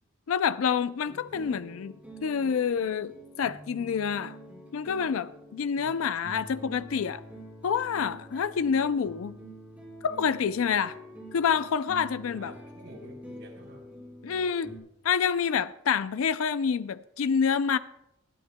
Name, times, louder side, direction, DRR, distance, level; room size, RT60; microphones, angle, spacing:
voice 1, 0.3-2.0 2.2-4.4 4.7-7.2 7.6-9.4 10.0-11.0 11.3-12.5 14.2-14.7 15.0-17.8, left 6 dB, 75° left, 0.4 m, -27 dB
sound 1, 1.1-14.8, right 1 dB, 10° right, 4.9 m, -46 dB
voice 2, 12.3-13.8, right 1 dB, 65° right, 4.5 m, -49 dB
20.0 x 12.5 x 2.2 m
head